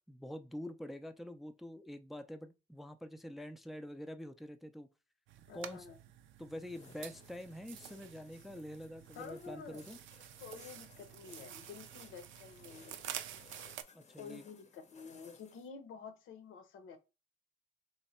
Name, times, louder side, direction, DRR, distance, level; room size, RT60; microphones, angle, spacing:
voice 1, 0.1-4.9 5.5-5.9 6.4-10.0 13.9-14.5, left 1 dB, ahead, 0.3 m, -46 dB
sound 1, 5.3-13.8, right 11 dB, 75° right, 0.4 m, -50 dB
voice 2, 5.5-6.0 9.1-9.8 10.4-13.0 14.2-17.0, left 6 dB, 85° left, 0.7 m, -50 dB
sound 2, 6.6-15.7, left 5 dB, 35° left, 0.6 m, -61 dB
3.2 x 2.1 x 4.1 m
cardioid pair, 90°, 20 cm